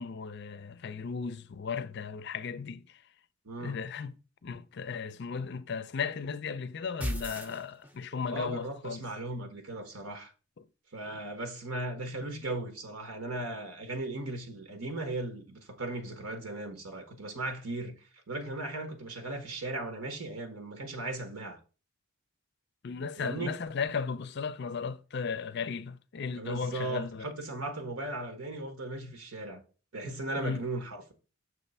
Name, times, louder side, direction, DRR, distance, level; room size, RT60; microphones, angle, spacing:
voice 1, 0.0-3.0 3.6-4.1 4.4-9.0 10.6-10.7 22.8-27.3 30.4-30.6, left 5 dB, 50° left, 0.5 m, -36 dB
voice 2, 3.4-3.8 8.3-10.3 10.9-21.6 23.2-23.6 26.4-29.6 29.9-31.1, right 2 dB, 85° right, 1.3 m, -37 dB
sound 1, 7.0-8.3, equal, 5° right, 0.5 m, -36 dB
6.4 x 3.2 x 5.4 m
head